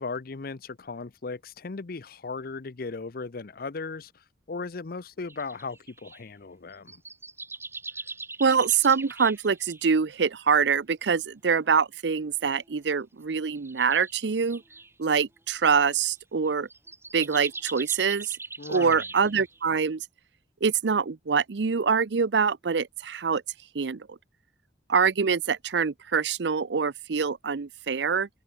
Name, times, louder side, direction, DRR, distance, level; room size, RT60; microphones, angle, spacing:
voice 1, 0.0-7.0 18.6-19.0, left 4 dB, 60° left, 0.7 m, -37 dB
sound 1, 5.3-6.2 6.7-9.9 11.5-11.6 12.4-12.8 13.5-14.9 15.8-16.1 16.5-19.6, right 3 dB, 15° right, 3.0 m, -42 dB
voice 2, 8.4-14.6 15.0-16.7 17.1-18.4 18.7-20.0 20.6-23.4 23.7-24.2 24.9-28.3, right 6 dB, 75° right, 0.6 m, -25 dB
open air
head